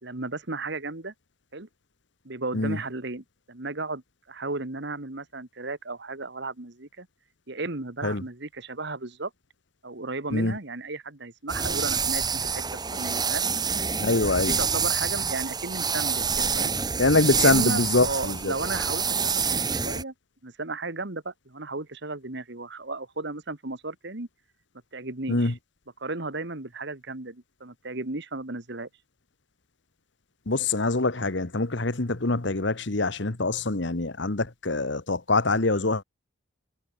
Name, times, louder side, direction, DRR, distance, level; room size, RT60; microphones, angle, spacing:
voice 1, 0.0-1.1 1.5-1.7 2.2-4.0 4.3-7.1 7.5-9.3 9.8-12.6 12.9-13.5 14.4-16.8 17.3-20.1 20.4-24.3 24.9-25.5 26.0-28.9, right 3 dB, 60° right, 1.9 m, -34 dB
sound 1, 11.5-20.0, right 6 dB, 20° right, 3.4 m, -27 dB
voice 2, 14.0-14.6 17.0-18.5 25.3-25.5 30.5-36.0, left 3 dB, 60° left, 1.4 m, -24 dB
head